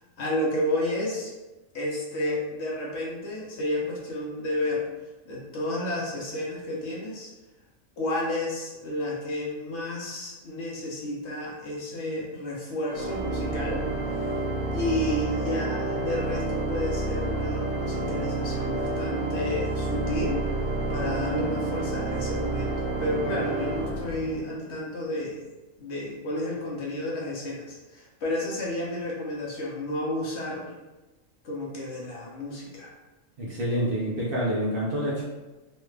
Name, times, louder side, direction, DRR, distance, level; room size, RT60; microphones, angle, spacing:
voice 1, 0.2-1.3 1.7-4.9 5.3-7.3 8.0-13.9 14.2-14.4 14.7-20.4 20.9-25.4 25.8-30.7 31.4-32.9, left 1 dB, 60° left, -4 dB, 0.9 m, -31 dB
Organ, 12.9-24.7, right 2 dB, 90° right, 1.2 m, -29 dB
voice 2, 33.4-35.2, equal, 55° right, -5 dB, 0.7 m, -27 dB
3.1 x 2.3 x 3.2 m, 1.1 s
omnidirectional pair, 1.4 m